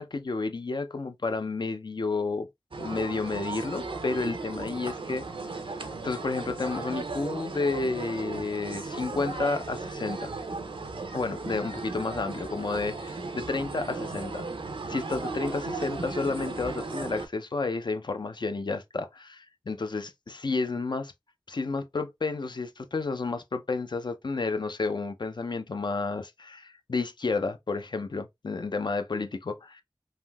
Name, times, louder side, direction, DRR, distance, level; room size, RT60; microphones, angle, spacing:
voice 1, 0.0-2.5 2.8-5.2 6.0-10.3 11.1-14.4 14.9-21.1 21.5-29.8, left 3 dB, 60° left, 0.4 m, -31 dB
sound 1, 2.7-17.3, right 3 dB, 85° right, 0.5 m, -36 dB
3.4 x 2.6 x 2.3 m
wide cardioid pair, 60°, 9 cm